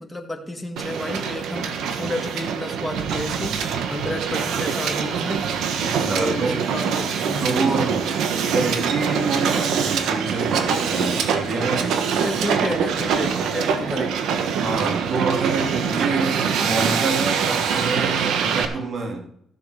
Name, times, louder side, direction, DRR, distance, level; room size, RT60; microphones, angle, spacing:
voice 1, 0.0-5.5 6.2-7.7 12.2-14.2, left 1 dB, 10° left, 1.9 m, -31 dB
Hiss, 0.8-18.6, right 6 dB, 80° right, 1.3 m, -24 dB
voice 2, 5.8-6.6 7.4-8.1 8.5-12.1 14.6-19.3, right 3 dB, 50° right, 2.8 m, -27 dB
14.5 x 7.2 x 4.9 m
cardioid pair, 90°, 0 cm